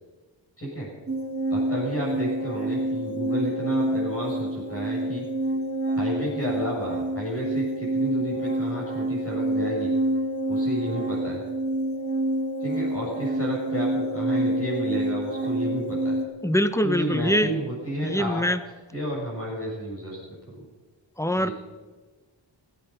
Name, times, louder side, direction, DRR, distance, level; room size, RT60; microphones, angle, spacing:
voice 1, 0.6-0.9 1.5-5.2 6.0-9.9 10.5-11.4 12.6-16.2 16.8-18.4 18.9-20.2 20.5-20.6 21.4-21.5, equal, 30° left, -5 dB, 6.8 m, -31 dB
sound 1, 1.1-16.2, right 1 dB, 25° right, 2.6 m, -27 dB
voice 2, 16.4-17.5 18.0-18.6 21.2-21.5, equal, 5° left, 11 dB, 0.8 m, -23 dB
16.5 x 15.0 x 5.6 m, 1.3 s
wide cardioid pair, 130°, 44 cm